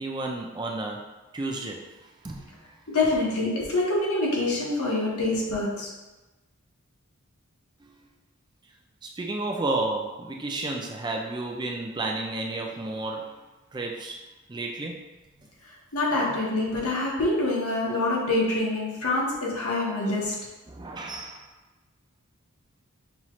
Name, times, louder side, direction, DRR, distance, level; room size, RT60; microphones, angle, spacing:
voice 1, 0.0-1.9 2.2-2.5 9.0-13.3 13.7-14.2 14.5-15.0 20.7-21.5, right 2 dB, 20° right, 1 dB, 0.3 m, -32 dB
voice 2, 2.9-5.9 15.9-20.3, left 2 dB, 85° left, -4 dB, 1.1 m, -25 dB
5.5 x 2.4 x 3.0 m, 1.1 s
head